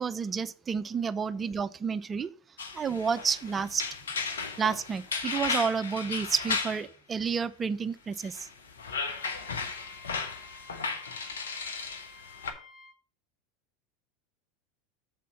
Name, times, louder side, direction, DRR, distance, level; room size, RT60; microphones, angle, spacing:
voice 1, 0.0-2.3 2.7-3.8 4.6-8.5, right 6 dB, 25° right, 14 dB, 0.5 m, -30 dB
sound 1, 2.6-6.9 8.2-12.5, left 5 dB, 80° left, 0.9 m, -35 dB
Wind instrument woodwind instrument, 8.9-13.0, left 3 dB, 15° left, 2.8 m, -53 dB
7.1 x 4.2 x 5.9 m, 0.41 s
hypercardioid pair, 80°, 0 cm